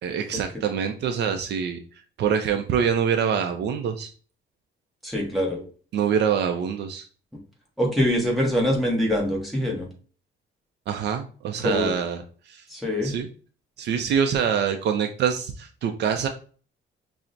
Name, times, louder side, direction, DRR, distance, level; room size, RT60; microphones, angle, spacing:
voice 1, 0.0-1.8 2.2-4.1 5.9-7.1 10.9-12.2 12.5-12.6 13.0-13.3 13.8-16.3, right 7 dB, 55° right, 6 dB, 0.4 m, -25 dB
voice 2, 5.0-5.6 7.8-9.9 11.6-11.9 12.7-13.1, equal, ahead, -2 dB, 0.9 m, -24 dB
5.6 x 2.0 x 2.5 m, 0.40 s
cardioid pair, 160°, 21 cm